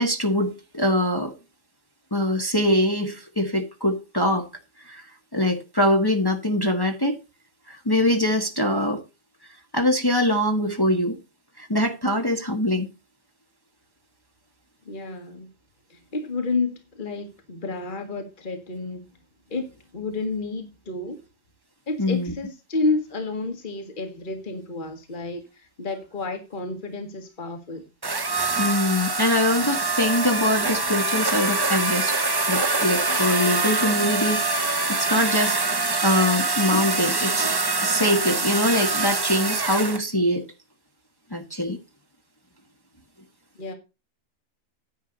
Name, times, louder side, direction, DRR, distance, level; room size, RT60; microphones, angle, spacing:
voice 1, 0.0-1.3 2.1-4.5 4.9-5.0 5.3-7.2 7.7-9.0 9.7-11.2 11.6-12.9 22.0-22.3 28.6-32.2 32.5-35.6 36.0-37.5 37.8-40.4 41.3-41.8, left 1 dB, 15° left, 1.4 m, -23 dB
voice 2, 14.9-15.5 15.9-19.0 19.5-19.7 19.9-21.2 21.9-27.9 43.6-43.7, left 3 dB, 35° left, 1.8 m, -30 dB
sound 1, 28.0-40.0, right 3 dB, 20° right, 0.7 m, -24 dB
10.0 x 9.3 x 4.0 m
omnidirectional pair, 1.5 m